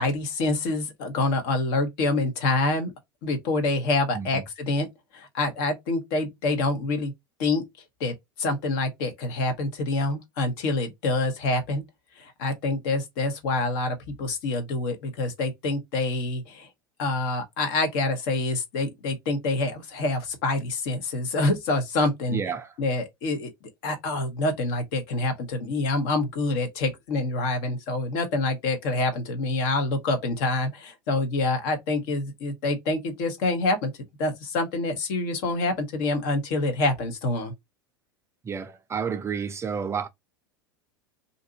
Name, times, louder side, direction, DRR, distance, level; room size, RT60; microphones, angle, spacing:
voice 1, 0.0-2.9 3.2-4.9 5.1-7.1 7.4-7.6 8.0-11.8 12.2-16.7 17.0-22.4 22.8-33.9 34.2-37.5, left 2 dB, 55° left, 1.0 m, -26 dB
voice 2, 22.3-22.7 38.4-40.1, right 6 dB, 20° right, 0.4 m, -30 dB
2.6 x 2.5 x 2.7 m
hypercardioid pair, 85°, 12 cm